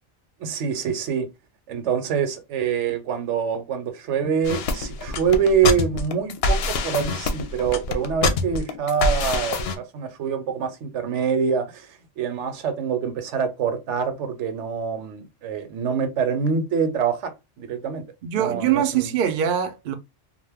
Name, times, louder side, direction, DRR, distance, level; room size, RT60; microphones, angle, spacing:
voice 1, 0.4-1.3 1.7-11.9 12.2-17.3 17.6-18.0 18.3-19.1, right 6 dB, 80° right, 0.9 m, -25 dB
sound 1, 4.5-9.8, left 3 dB, 65° left, 0.7 m, -25 dB
voice 2, 18.2-19.9, right 9 dB, 60° right, 0.6 m, -23 dB
2.5 x 2.2 x 3.3 m
omnidirectional pair, 1.2 m